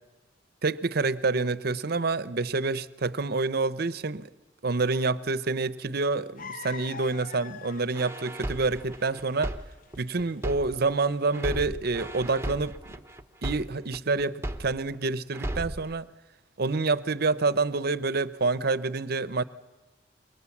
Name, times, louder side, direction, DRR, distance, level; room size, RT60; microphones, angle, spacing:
voice 1, 0.6-4.3 4.6-9.5 10.0-13.0 13.4-16.1 16.6-19.4, right 3 dB, 55° right, 16 dB, 0.8 m, -27 dB
sound 1, 6.4-11.4, left 6 dB, 45° left, 0.8 m, -43 dB
sound 2, 7.9-11.0 11.3-15.0 15.3-15.9, right 1 dB, 15° right, 1.1 m, -35 dB
28.0 x 22.5 x 7.3 m, 1.1 s
head